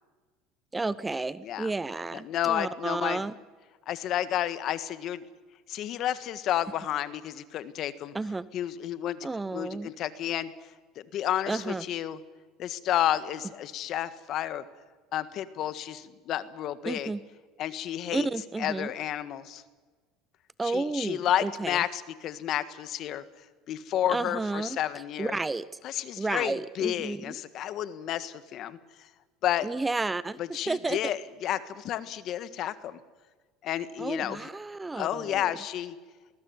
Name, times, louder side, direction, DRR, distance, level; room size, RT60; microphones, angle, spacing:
voice 1, 0.7-3.3 8.1-8.5 9.2-9.9 11.5-11.8 16.9-17.2 18.1-18.9 20.6-21.8 24.1-25.7 26.2-27.3 29.6-31.0 34.0-35.6, right 3 dB, 15° right, 18 dB, 0.7 m, -32 dB
voice 2, 2.1-3.2 3.9-5.2 5.7-8.1 8.5-9.2 9.5-10.5 11.1-12.2 12.6-14.6 15.1-17.1 17.6-18.3 18.6-19.6 20.6-23.2 23.7-25.4 25.8-28.8 29.4-29.7 30.4-33.0 33.6-34.5 35.0-35.9, left 11 dB, 55° left, 13 dB, 1.6 m, -31 dB
20.5 x 19.0 x 9.6 m, 1.4 s
supercardioid pair, 105°, 0 cm